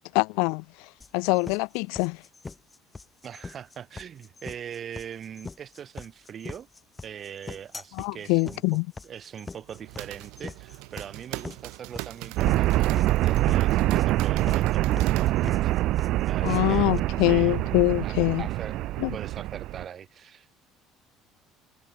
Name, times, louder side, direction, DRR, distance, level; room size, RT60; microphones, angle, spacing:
voice 1, 0.1-2.2 8.0-8.9 16.4-18.5 19.0-19.2, left 33 dB, 90° left, 0.4 m, -24 dB
sound 1, 1.0-17.0, left 4 dB, 15° left, 1.1 m, -41 dB
voice 2, 3.2-6.7 7.0-8.8 9.0-15.7 16.3-16.9 17.3-17.6 18.0-18.8 19.1-20.5, right 8 dB, 35° right, 4.4 m, -41 dB
sound 2, 9.6-15.8, right 27 dB, 80° right, 4.6 m, -42 dB
sound 3, 12.4-19.8, right 16 dB, 55° right, 0.7 m, -25 dB
cardioid pair, 155°, 0 cm